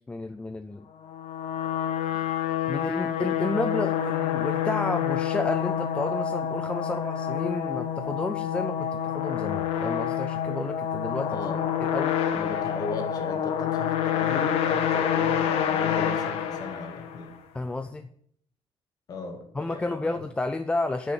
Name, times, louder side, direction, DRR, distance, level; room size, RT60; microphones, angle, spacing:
voice 1, 0.1-0.9 2.7-11.4 11.8-12.2 17.5-18.1 19.5-21.1, left 2 dB, 10° left, 8 dB, 0.4 m, -31 dB
sound 1, 1.0-17.4, left 9 dB, 70° left, 1.2 m, -28 dB
voice 2, 11.3-11.7 12.3-17.4 19.1-20.2, left 3 dB, 35° left, 4 dB, 1.8 m, -37 dB
9.3 x 5.6 x 8.2 m, 0.64 s
cardioid pair, 170°, 11 cm